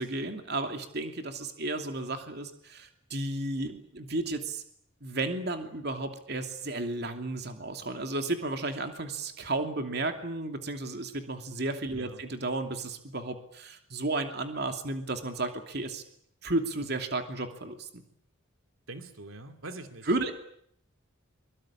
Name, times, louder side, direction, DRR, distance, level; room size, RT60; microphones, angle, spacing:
voice 1, 0.0-4.6 5.0-16.0 16.4-18.0 20.1-20.3, right 2 dB, 50° right, 6 dB, 2.8 m, -33 dB
voice 2, 18.9-20.3, right 2 dB, 85° right, 7 dB, 2.5 m, -44 dB
24.0 x 23.5 x 8.8 m, 0.68 s
head